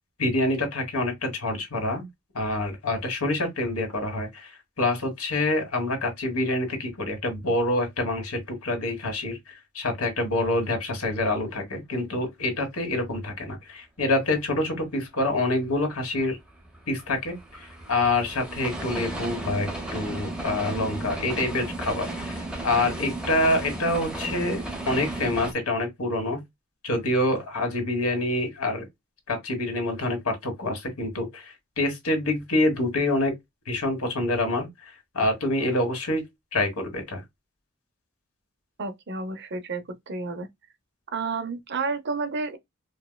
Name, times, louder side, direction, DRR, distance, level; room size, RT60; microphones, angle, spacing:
voice 1, 0.2-2.1 2.3-4.5 4.8-16.4 16.9-26.4 26.8-28.8 29.3-33.3 33.7-34.7 35.1-36.2 36.5-37.2, left 2 dB, 85° left, 1.5 m, -26 dB
sound 1, 16.2-25.5, right 2 dB, 5° right, 0.9 m, -34 dB
voice 2, 38.8-40.5 41.1-42.6, right 4 dB, 55° right, 0.7 m, -31 dB
4.6 x 2.2 x 2.2 m
head